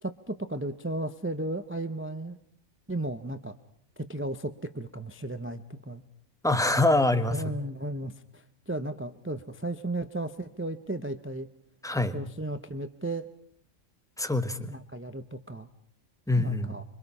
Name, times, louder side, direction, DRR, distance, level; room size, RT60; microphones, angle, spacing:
voice 1, 0.0-2.4 2.9-3.6 4.0-6.0 7.3-11.5 12.1-13.3 14.7-15.7 16.4-16.8, right 1 dB, 10° right, 10 dB, 0.7 m, -35 dB
voice 2, 6.4-7.4 11.8-12.2 14.2-14.7 16.3-16.7, left 2 dB, 5° left, 10 dB, 1.1 m, -25 dB
25.5 x 24.5 x 5.5 m, 0.68 s
omnidirectional pair, 1.3 m